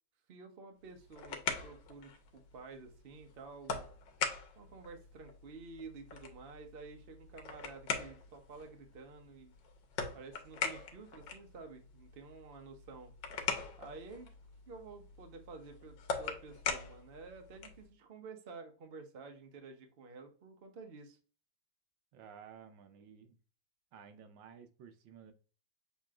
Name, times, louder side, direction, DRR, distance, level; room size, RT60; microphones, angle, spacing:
voice 1, 0.3-3.9 4.6-9.5 10.1-13.1 13.8-14.3 14.7-21.2, right 4 dB, 55° right, 4 dB, 0.6 m, -51 dB
sound 1, 0.8-17.9, left 5 dB, 70° left, 1.5 m, -42 dB
voice 2, 22.1-23.4 23.9-25.3, right 7 dB, 75° right, 7 dB, 1.3 m, -54 dB
6.7 x 3.0 x 2.4 m, 0.38 s
omnidirectional pair, 2.2 m